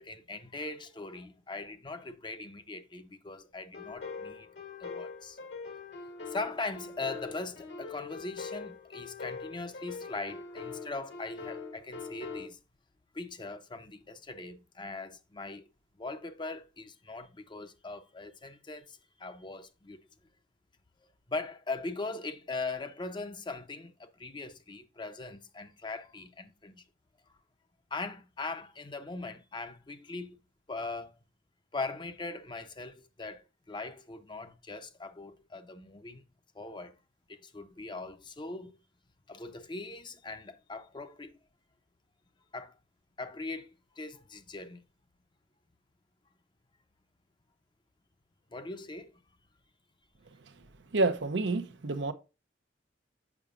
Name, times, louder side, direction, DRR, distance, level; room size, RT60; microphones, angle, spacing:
voice 1, 0.0-5.4 6.3-12.6 13.1-15.7 16.0-20.0 21.3-26.8 27.3-27.4 27.9-30.4 30.7-31.2 31.7-36.2 36.5-37.0 37.3-38.7 39.3-41.4 42.5-42.7 43.2-44.8 48.5-49.1, left 3 dB, 25° left, 0.7 m, -40 dB
sound 1, 3.7-12.5, left 4 dB, 70° left, 1.8 m, -43 dB
voice 2, 50.9-52.1, right 3 dB, 80° right, 0.7 m, -28 dB
7.1 x 5.9 x 2.5 m
head